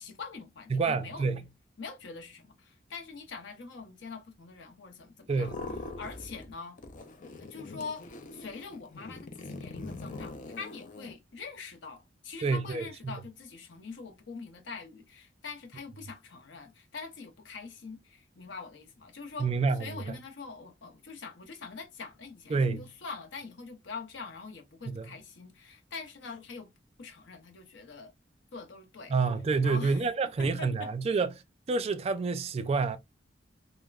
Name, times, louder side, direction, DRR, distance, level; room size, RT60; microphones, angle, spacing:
voice 1, 0.0-1.3 1.8-5.5 6.0-6.8 7.4-19.5 19.8-26.7 27.0-28.1 28.5-29.1 29.6-30.0 30.4-30.9, left 4 dB, 90° left, 0.7 m, -44 dB
voice 2, 0.7-1.4 5.3-5.6 12.4-13.2 19.4-20.0 22.5-22.9 24.9-25.1 29.1-31.3 31.7-33.0, right 4 dB, 35° right, 0.3 m, -28 dB
sound 1, 5.3-6.5 6.8-11.1, left 2 dB, 45° left, 0.4 m, -43 dB
3.2 x 2.1 x 2.3 m
head